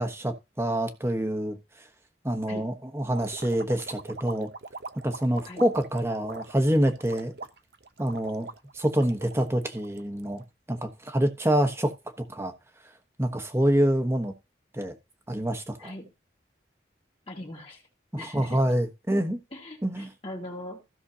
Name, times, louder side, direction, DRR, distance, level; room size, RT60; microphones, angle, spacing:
voice 1, 0.0-1.9 2.2-4.5 5.0-7.3 8.0-8.5 8.7-10.4 10.7-12.5 13.2-14.3 14.7-14.9 15.3-15.9 18.1-19.4 19.8-20.1, right 1 dB, 15° right, 1.1 m, -26 dB
sound 1, 3.1-10.4, right 4 dB, 60° right, 0.7 m, -42 dB
voice 2, 15.8-16.1 17.3-17.8 18.2-18.6 19.5-20.8, left 1 dB, 30° left, 1.9 m, -40 dB
15.5 x 6.2 x 2.8 m
head